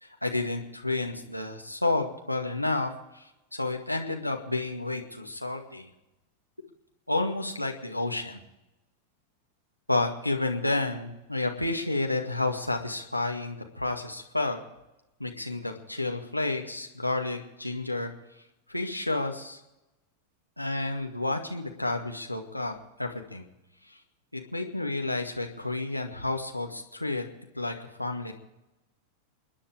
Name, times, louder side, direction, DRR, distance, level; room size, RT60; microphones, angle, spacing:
voice 1, 0.0-5.9 7.1-8.4 9.9-14.6 15.2-18.1 18.7-19.6 20.6-23.4 23.8-24.0 24.3-27.3 27.5-28.3, left 2 dB, 90° left, 3 dB, 2.0 m, -30 dB
29.5 x 9.9 x 4.9 m, 0.97 s
figure-of-eight pair, 90°, 0 cm